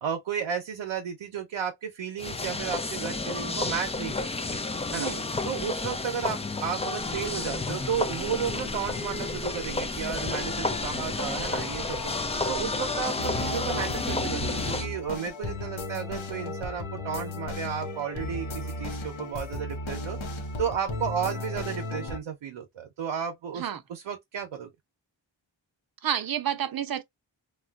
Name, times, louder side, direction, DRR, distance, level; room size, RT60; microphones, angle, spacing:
voice 1, 0.0-4.3 4.9-5.1 5.4-12.1 12.5-20.2 20.6-24.7, right 7 dB, 90° right, 0.7 m, -33 dB
sound 1, 2.2-14.9, left 3 dB, 15° left, 0.3 m, -31 dB
sound 2, 7.0-12.8, left 2 dB, 50° left, 0.8 m, -43 dB
sound 3, 13.2-22.2, left 2 dB, 85° left, 0.9 m, -35 dB
voice 2, 26.0-27.0, right 10 dB, 50° right, 0.6 m, -29 dB
3.1 x 2.3 x 2.2 m
cardioid pair, 55°, 46 cm